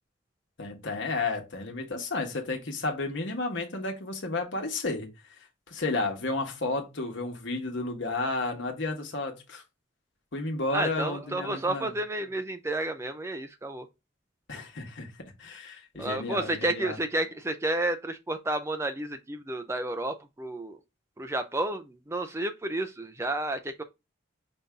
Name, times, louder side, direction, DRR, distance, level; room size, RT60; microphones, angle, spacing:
voice 1, 0.6-5.1 5.7-9.6 10.3-11.9 14.5-15.1 15.4-17.0, left 3 dB, 70° left, 1.2 m, -32 dB
voice 2, 10.7-13.9 16.0-20.8 21.2-23.8, right 2 dB, 15° right, 0.4 m, -31 dB
5.5 x 2.7 x 3.4 m
head